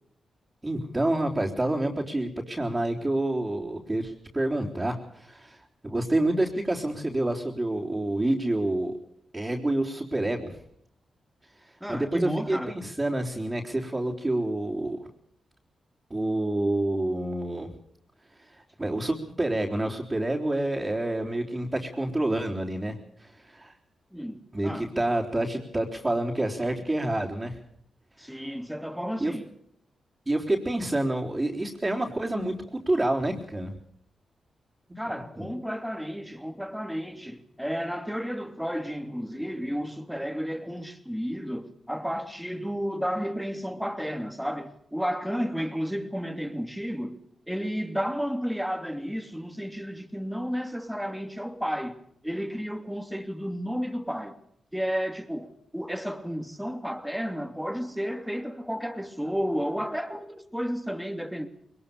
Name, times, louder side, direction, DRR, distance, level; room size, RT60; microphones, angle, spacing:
voice 1, 0.6-8.9 9.3-10.6 11.6-15.0 16.1-17.7 18.4-23.8 24.5-27.6 29.2-29.4 30.3-33.8 35.4-35.5, right 1 dB, 25° right, 3.9 m, -28 dB
voice 2, 11.8-12.7 24.1-24.9 28.2-29.5 35.0-47.2 47.5-52.0 52.2-54.4 54.7-61.5, equal, ahead, 2.8 m, -32 dB
21.5 x 19.5 x 7.0 m
supercardioid pair, 45°, 0 cm